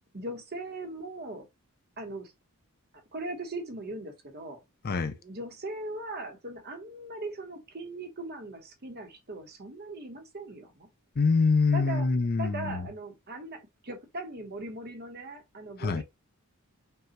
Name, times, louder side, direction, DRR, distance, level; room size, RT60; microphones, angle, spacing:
voice 1, 0.1-1.5 2.0-2.3 3.1-4.6 5.2-10.9 11.7-12.1 12.4-16.0, right 2 dB, 45° right, 1.1 m, -39 dB
voice 2, 4.8-5.2 11.2-12.9 15.8-16.0, left 4 dB, 45° left, 0.5 m, -25 dB
5.4 x 2.3 x 2.9 m
head